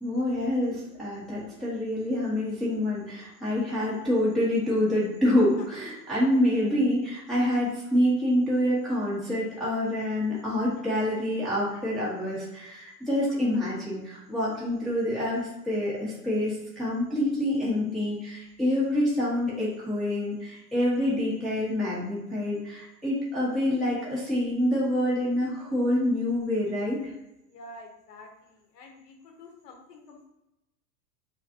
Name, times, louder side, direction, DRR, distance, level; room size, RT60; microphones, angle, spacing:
voice 1, 0.0-27.1, left 1 dB, ahead, -9 dB, 1.3 m, -27 dB
voice 2, 4.0-4.4 9.9-10.0 11.7-11.8 25.2-25.3 27.4-30.3, left 1 dB, 70° left, 2 dB, 1.4 m, -49 dB
7.0 x 2.5 x 2.8 m, 0.91 s
supercardioid pair, 135°, 50 cm